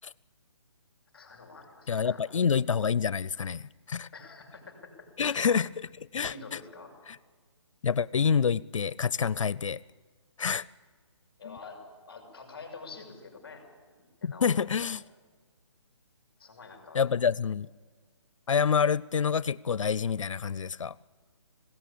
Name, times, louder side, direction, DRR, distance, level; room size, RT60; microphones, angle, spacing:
voice 1, 1.1-2.2 4.1-5.5 6.3-6.9 11.4-11.8 12.1-14.5 16.4-17.0, left 4 dB, 5° left, 0 dB, 5.9 m, -47 dB
voice 2, 1.9-4.1 5.2-6.6 7.1-7.2 7.8-9.8 10.4-10.6 11.5-11.6 14.2-15.0 16.9-17.7 18.5-21.0, left 6 dB, 80° left, 19 dB, 0.5 m, -27 dB
20.5 x 17.0 x 8.6 m, 1.5 s
hypercardioid pair, 175°, 16 cm